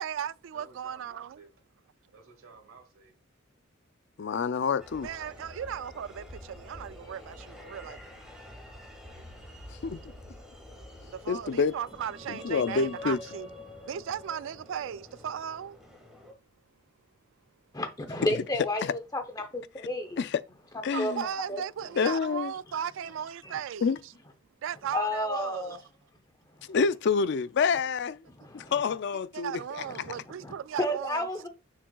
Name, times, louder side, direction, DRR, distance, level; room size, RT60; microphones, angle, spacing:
voice 1, 0.0-1.4 5.0-8.0 11.1-13.5 13.8-15.8 20.9-24.1 24.6-25.8 29.3-31.2, right 9 dB, 65° right, 0.3 m, -37 dB
voice 2, 0.5-1.5 2.1-3.2, right 4 dB, 85° right, 2.0 m, -54 dB
voice 3, 4.2-5.1 9.8-10.0 11.3-11.7 12.3-13.2 20.2-20.3 20.8-21.2 22.0-22.5 23.8-24.0 26.7-28.2 28.5-29.5, left 5 dB, 55° left, 0.4 m, -27 dB
sound 1, 4.8-16.3, left 1 dB, 5° right, 1.6 m, -47 dB
voice 4, 17.7-20.2 20.7-21.6 22.7-22.8 23.4-23.6 24.9-25.8 26.5-26.8 28.3-29.0 29.5-30.1 30.4-31.5, left 1 dB, 20° left, 0.7 m, -33 dB
7.0 x 5.9 x 2.3 m
head